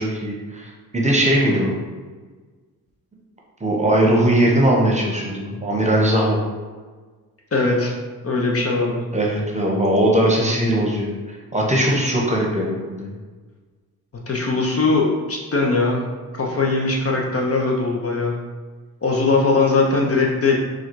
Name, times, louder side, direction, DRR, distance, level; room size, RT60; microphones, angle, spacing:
voice 1, 0.0-1.8 3.6-6.4 9.1-13.1, right 1 dB, 20° right, -2 dB, 0.9 m, -20 dB
voice 2, 7.5-7.9 8.2-9.0 14.3-16.0 16.4-18.3 19.0-20.6, left 3 dB, 40° left, -1 dB, 0.7 m, -20 dB
3.9 x 2.4 x 4.6 m, 1.4 s
cardioid pair, 85°, 37 cm